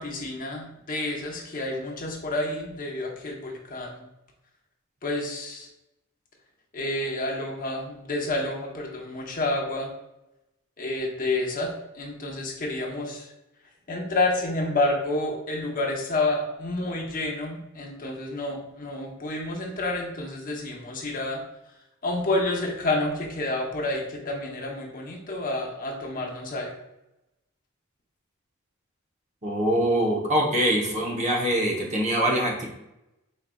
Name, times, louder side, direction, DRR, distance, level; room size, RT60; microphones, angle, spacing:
voice 1, 0.0-4.0 5.0-5.7 6.7-9.9 10.8-13.3 13.9-21.4 22.0-26.7, left 2 dB, 40° left, -1 dB, 0.8 m, -29 dB
voice 2, 29.4-32.7, right 1 dB, 35° right, -1 dB, 0.9 m, -24 dB
4.9 x 3.9 x 2.3 m, 0.91 s
head